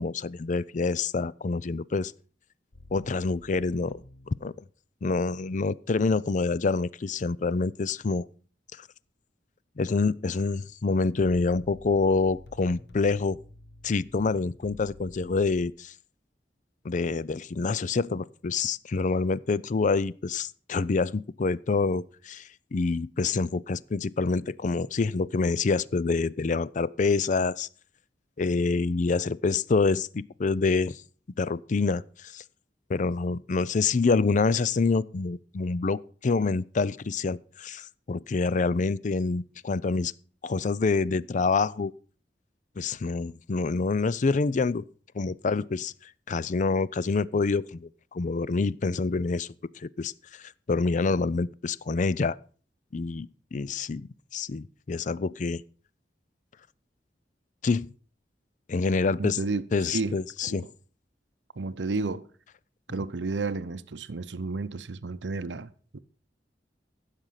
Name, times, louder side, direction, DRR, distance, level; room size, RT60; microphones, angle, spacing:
voice 1, 0.0-2.1 2.9-4.5 5.0-8.2 8.8-8.9 9.8-13.4 13.8-15.9 16.8-27.7 28.4-31.0 31.4-32.4 32.9-40.1 40.4-41.9 42.8-44.8 45.1-45.9 46.3-49.5 49.8-52.4 52.9-55.6 57.6-57.9 58.7-59.4 59.7-60.6, left 4 dB, 45° left, 0.5 m, -27 dB
sound 1, 2.7-4.4 11.2-15.7, left 2 dB, 70° left, 1.0 m, -49 dB
voice 2, 59.2-59.6 59.9-60.2 60.4-60.7 61.6-62.3 62.9-66.0, right 3 dB, 90° right, 0.7 m, -32 dB
15.5 x 6.6 x 5.7 m
head